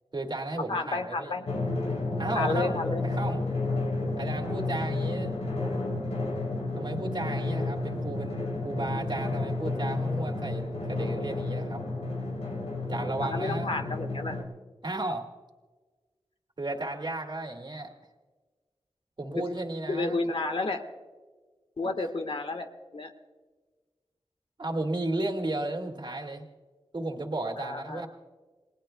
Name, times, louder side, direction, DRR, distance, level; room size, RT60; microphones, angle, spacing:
voice 1, 0.1-1.3 2.2-3.4 4.2-5.3 6.8-11.8 12.9-13.7 14.8-15.3 16.6-17.9 19.2-20.2 21.8-22.1 24.6-26.5 26.9-28.1, right 2 dB, 45° right, 2 dB, 2.2 m, -34 dB
voice 2, 0.7-1.5 2.3-3.0 13.2-14.4 19.3-19.4 19.9-20.8 21.8-22.7 22.9-23.1 27.6-28.0, left 3 dB, 60° left, 6 dB, 1.5 m, -31 dB
Drum, 1.5-14.4, left 2 dB, 85° left, 3.5 m, -31 dB
28.5 x 19.0 x 2.3 m, 1.4 s
wide cardioid pair, 55°, 11 cm